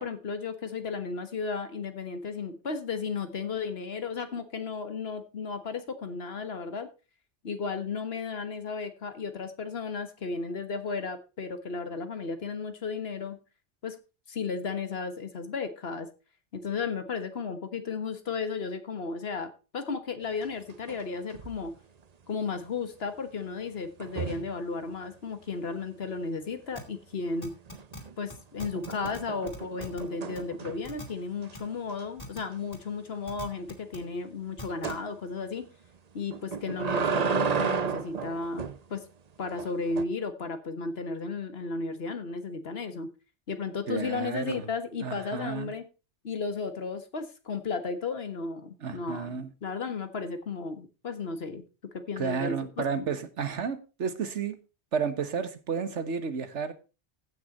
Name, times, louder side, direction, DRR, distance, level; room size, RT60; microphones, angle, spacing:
voice 1, 0.0-6.9 7.4-13.4 13.8-14.0 14.3-16.1 16.5-21.7 22.3-27.5 28.2-35.7 36.1-39.0 39.4-43.1 43.5-45.9 46.2-53.1, left 4 dB, 60° left, 1.6 m, -34 dB
sound 1, 20.4-21.0 21.3-21.7 24.0-24.5 27.7-28.1 28.6-31.0 31.4-31.5 31.9-32.0 32.4-32.5 34.8-35.0 36.3-38.8 39.6-40.0, right 6 dB, 40° right, 0.8 m, -32 dB
sound 2, 26.8-26.9 27.4-28.0 28.3-28.4 28.6-29.2 29.5-30.0 30.4-30.5 30.8-31.0 31.5-31.6 32.2-32.4 32.7-32.8 33.3-34.0 34.6-34.9, left 1 dB, 35° left, 2.9 m, -41 dB
voice 2, 43.9-44.7 45.0-45.7 48.8-49.5 52.2-54.6 54.9-56.7, right 6 dB, 85° right, 1.5 m, -32 dB
15.0 x 6.3 x 4.2 m
omnidirectional pair, 1.2 m